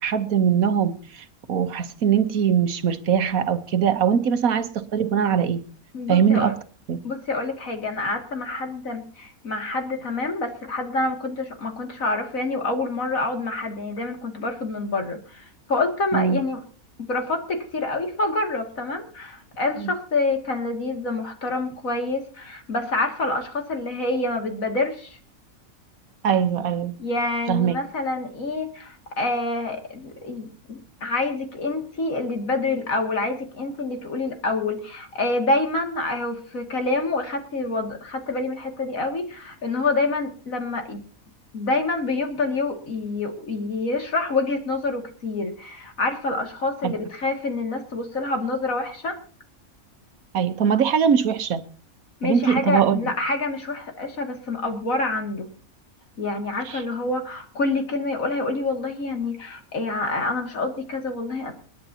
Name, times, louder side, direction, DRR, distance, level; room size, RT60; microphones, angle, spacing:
voice 1, 0.0-5.6 6.1-6.6 6.9-7.0 16.1-16.4 19.8-19.9 26.2-26.9 27.5-27.8 46.8-46.9 50.3-51.6 52.2-53.1 56.7-56.8, right 7 dB, 85° right, 1.5 m, -21 dB
voice 2, 5.9-6.5 7.0-16.6 17.1-25.2 27.0-41.0 41.5-49.2 52.2-55.5 56.2-61.5, left 2 dB, 70° left, 2.8 m, -27 dB
29.0 x 10.0 x 2.9 m
omnidirectional pair, 1.5 m